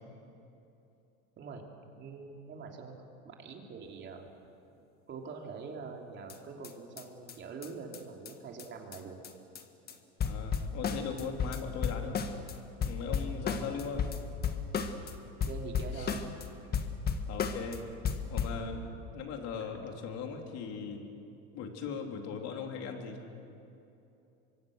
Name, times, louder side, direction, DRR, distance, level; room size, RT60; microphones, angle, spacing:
voice 1, 2.0-4.3 4.7-4.8 5.1-9.2 13.6-13.7 15.5-16.3, right 4 dB, 35° right, 2 dB, 3.2 m, -44 dB
sound 1, 6.3-6.4 6.6-6.7 7.0-7.1 7.3-7.4 7.6-7.7 7.9-8.0 8.3-8.4 8.6-8.7 8.9-9.0 9.2-9.6 9.9-10.0 10.2-12.5 12.8-15.1 15.4-16.4 16.7-17.8 18.0-18.6, left 6 dB, 30° left, 1.8 m, -33 dB
voice 2, 10.2-12.2 12.8-14.1 15.9-16.1 17.3-17.8 18.3-18.8 19.1-21.0 21.5-23.2, left 6 dB, 55° left, 3 dB, 3.5 m, -39 dB
25.0 x 24.0 x 6.5 m, 2.8 s
supercardioid pair, 120°, 30 cm